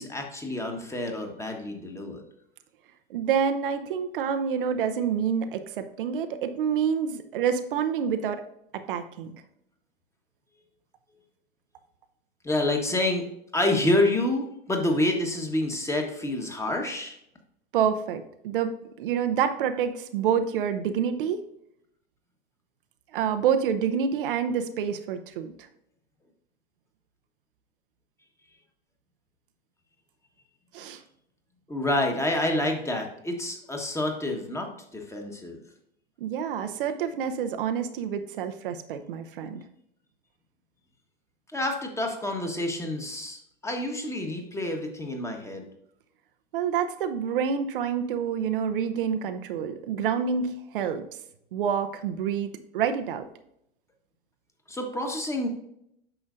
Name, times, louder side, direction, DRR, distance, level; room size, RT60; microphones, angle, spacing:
voice 1, 0.0-2.2 12.4-13.2 13.5-17.2 31.7-35.6 41.5-45.7 54.7-55.5, left 1 dB, 10° left, 2 dB, 1.3 m, -28 dB
voice 2, 3.1-8.4 8.7-9.3 17.7-18.7 19.0-21.4 23.1-25.7 30.7-31.0 36.2-39.6 46.5-51.1 51.5-53.3, right 7 dB, 65° right, 8 dB, 0.7 m, -27 dB
8.8 x 6.2 x 2.6 m, 0.75 s
hypercardioid pair, 90°, 29 cm